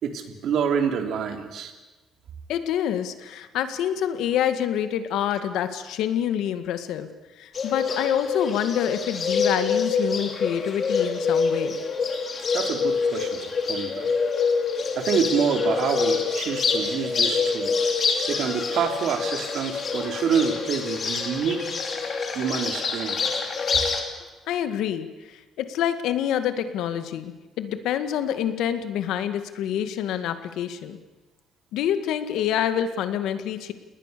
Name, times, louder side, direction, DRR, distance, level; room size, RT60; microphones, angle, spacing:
voice 1, 0.0-1.7 12.5-14.1 15.0-18.0 18.3-21.8 22.3-23.5 23.7-23.8, right 7 dB, 60° right, 5 dB, 3.2 m, -27 dB
voice 2, 2.5-7.1 7.4-11.8 24.5-31.0 31.7-33.7, left 10 dB, 85° left, 10 dB, 2.0 m, -27 dB
Bird, 7.5-24.0, left 5 dB, 35° left, 3.3 m, -26 dB
29.5 x 20.0 x 6.9 m, 1.2 s
cardioid pair, 160°, 0 cm